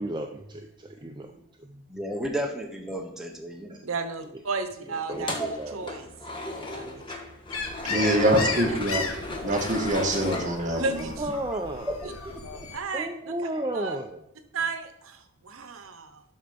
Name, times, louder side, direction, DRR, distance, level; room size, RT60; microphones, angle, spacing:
voice 1, 0.0-1.8 3.7-3.8 5.1-6.0 7.9-8.5 10.8-10.9 11.2-12.0 12.9-14.2, right 1 dB, 20° right, 3 dB, 0.6 m, -34 dB
voice 2, 1.9-3.8 5.4-5.5 11.9-12.7, right 1 dB, 5° right, 1 dB, 1.0 m, -33 dB
voice 3, 3.8-6.1 6.7-7.0 8.7-8.8 10.8-11.1 12.0-12.1 12.7-13.3 13.7-14.0 14.5-16.2, right 4 dB, 80° right, 9 dB, 0.9 m, -33 dB
sound 1, 5.1-11.1, left 2 dB, 25° left, 1.3 m, -36 dB
sound 2, 7.5-12.8, left 4 dB, 90° left, 1.4 m, -35 dB
voice 4, 7.8-9.1 9.4-11.0, right 1 dB, 35° right, 1 dB, 1.7 m, -24 dB
12.0 x 4.5 x 5.2 m, 0.74 s
head